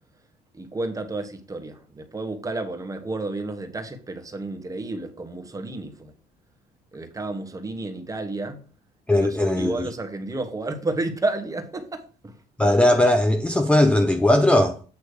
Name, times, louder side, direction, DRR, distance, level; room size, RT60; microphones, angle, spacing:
voice 1, 0.5-6.1 6.9-8.6 9.1-12.3 12.7-12.8, right 2 dB, 20° right, 1.3 m, -31 dB
voice 2, 9.1-9.9 12.6-14.8, left 1 dB, 5° left, 0.6 m, -19 dB
8.4 x 3.1 x 6.5 m
cardioid pair, 110°, 17 cm